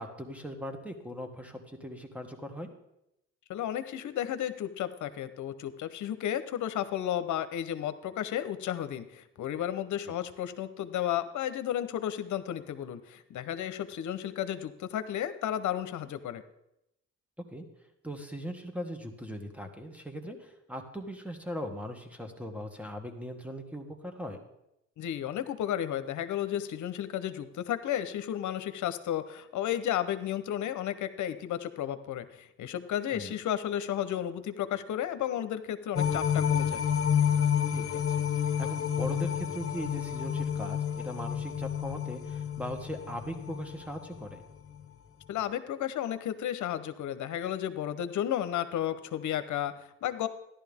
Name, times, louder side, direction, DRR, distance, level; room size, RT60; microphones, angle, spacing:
voice 1, 0.0-2.7 10.1-10.2 17.5-17.6 18.0-24.4 33.1-33.3 37.7-44.4, equal, 5° right, 5 dB, 1.8 m, -39 dB
voice 2, 3.5-16.4 25.0-36.8 45.3-50.3, left 11 dB, 75° left, 11 dB, 0.9 m, -33 dB
sound 1, 35.9-44.3 44.7-44.8, left 8 dB, 45° left, 1.3 m, -30 dB
13.5 x 11.5 x 3.6 m, 0.84 s
cardioid pair, 90°, 30 cm